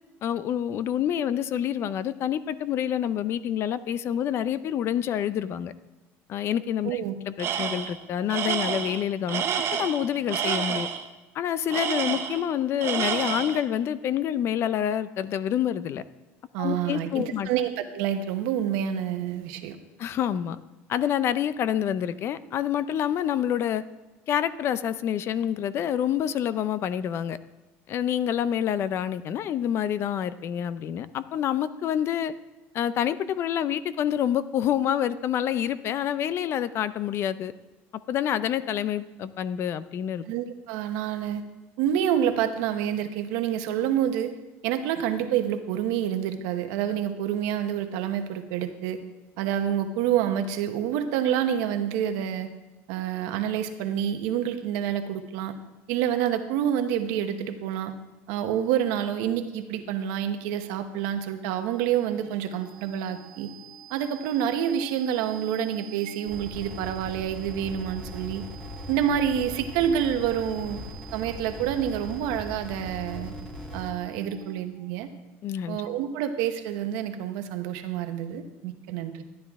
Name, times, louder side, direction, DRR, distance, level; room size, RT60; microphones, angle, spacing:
voice 1, 0.2-5.7 6.3-9.4 9.8-10.9 11.3-16.0 16.6-17.5 20.0-20.6 20.9-23.8 24.3-27.4 27.9-32.3 32.7-37.5 38.1-40.2 75.4-75.8, left 10 dB, 45° left, 0.5 m, -27 dB
voice 2, 6.8-7.2 16.5-19.8 40.3-41.4 41.8-44.3 44.6-49.0 49.4-52.5 52.9-55.5 55.9-57.9 58.3-63.5 63.9-68.4 68.9-70.8 71.1-73.3 73.7-75.1 75.7-79.2, right 9 dB, 80° right, 1.1 m, -28 dB
Tools, 7.4-8.0 8.3-11.0 11.7-12.5 12.8-13.6, right 8 dB, 45° right, 1.0 m, -29 dB
sound 1, 61.2-74.8, right 5 dB, 20° right, 1.2 m, -47 dB
sound 2, 66.3-73.9, left 1 dB, 15° left, 1.6 m, -40 dB
13.0 x 10.0 x 3.6 m
cardioid pair, 135°, 6 cm